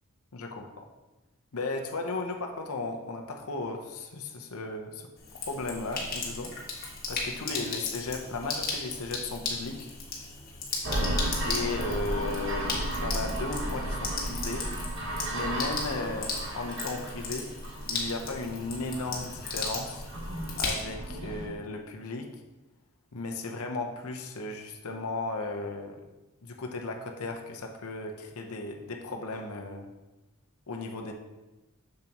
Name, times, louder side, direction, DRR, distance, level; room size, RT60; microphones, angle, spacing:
voice 1, 0.3-0.8 1.5-5.1 5.3-6.5 7.1-9.9 11.4-14.7 15.3-17.5 17.8-20.0 20.6-22.3 23.1-26.0 26.4-29.9 30.7-31.1, left 3 dB, 75° left, 3 dB, 0.8 m, -35 dB
Sink (filling or washing), 5.2-21.1, left 4 dB, 40° left, 1.4 m, -36 dB
sound 1, 10.8-21.5, right 1 dB, 55° right, 1.4 m, -34 dB
7.1 x 6.6 x 3.0 m, 1.1 s
head